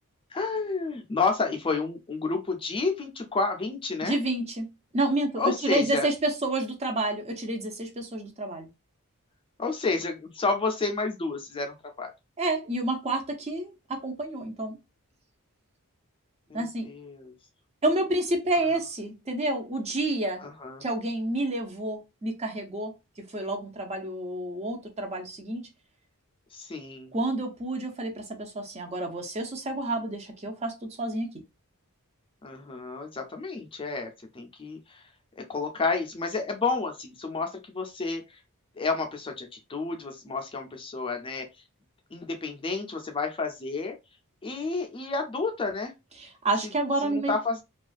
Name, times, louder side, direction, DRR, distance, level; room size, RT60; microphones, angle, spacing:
voice 1, 0.3-4.2 5.4-6.1 9.6-12.1 16.5-17.3 20.4-20.8 26.5-27.1 32.4-34.8 35.4-38.2 38.8-41.5 42.1-43.9 44.4-45.9 47.0-47.6, left 4 dB, 25° left, 0.4 m, -30 dB
voice 2, 4.0-4.7 4.9-8.7 12.4-14.8 16.5-16.9 17.8-20.4 20.8-22.9 23.3-25.7 27.1-31.3 46.2-47.3, right 2 dB, 30° right, 0.5 m, -29 dB
2.4 x 2.3 x 2.4 m
head